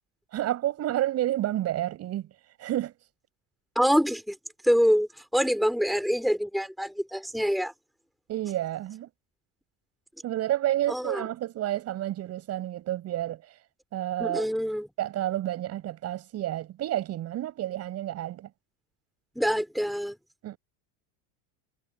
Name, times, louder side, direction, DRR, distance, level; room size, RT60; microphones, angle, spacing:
voice 1, 0.3-2.3 2.6-2.9 8.3-9.1 10.2-13.4 13.9-14.5 15.0-18.5 20.4-20.6, right 13 dB, 35° right, 7.5 m, -30 dB
voice 2, 3.7-4.4 4.6-7.7 10.9-11.3 14.2-14.9 19.3-20.1, equal, ahead, 3.2 m, -25 dB
cardioid pair, 165°, 43 cm